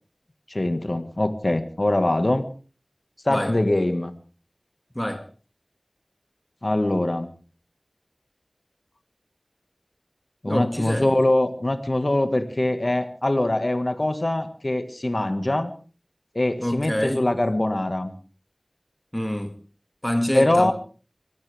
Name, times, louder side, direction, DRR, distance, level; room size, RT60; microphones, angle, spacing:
voice 1, 0.5-2.4 3.2-4.1 6.6-7.3 10.4-15.7 16.3-18.1 20.3-20.7, left 1 dB, 55° left, 1.7 m, -23 dB
voice 2, 10.5-11.1 16.6-17.3 19.1-19.6 20.0-20.7, equal, 15° left, 2.0 m, -26 dB
23.5 x 16.5 x 3.5 m
wide cardioid pair, 45°, 0 cm